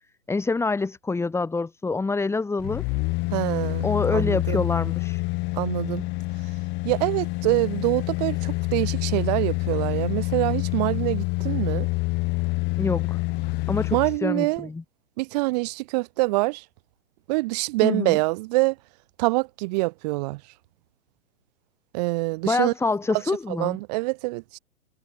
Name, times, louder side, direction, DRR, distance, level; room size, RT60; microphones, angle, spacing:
voice 1, 0.3-2.8 3.8-5.2 12.8-13.2 13.7-14.8 17.8-18.2 22.4-23.8, left 3 dB, 5° left, 6.7 m, -26 dB
sound 1, 2.6-14.2 14.6-14.7, left 26 dB, 25° left, 2.1 m, -27 dB
voice 2, 3.3-4.6 5.5-6.0 6.8-11.9 13.9-14.7 15.2-16.6 17.3-18.7 19.2-20.4 21.9-22.7 23.5-24.6, right 24 dB, 30° right, 1.4 m, -25 dB
figure-of-eight pair, 130°, 42 cm